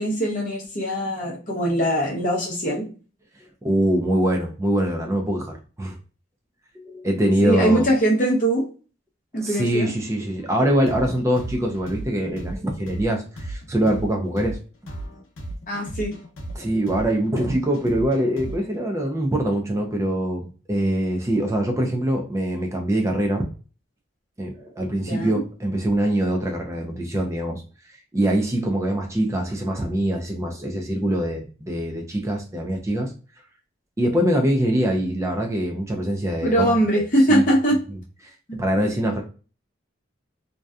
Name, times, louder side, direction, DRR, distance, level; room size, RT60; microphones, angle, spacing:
voice 1, 0.0-2.9 7.4-8.6 9.3-9.9 15.7-16.2 25.1-25.4 36.4-37.8 38.5-38.6, right 1 dB, 40° left, -3 dB, 0.7 m, -21 dB
voice 2, 3.6-6.0 6.7-7.8 9.4-14.6 16.5-23.4 24.4-27.6 27.9-33.1 34.0-37.4 38.2-39.2, right 1 dB, 15° right, 2 dB, 0.3 m, -23 dB
sound 1, 10.9-18.8, right 1 dB, 85° left, 0.6 m, -35 dB
2.6 x 2.2 x 2.3 m, 0.37 s
head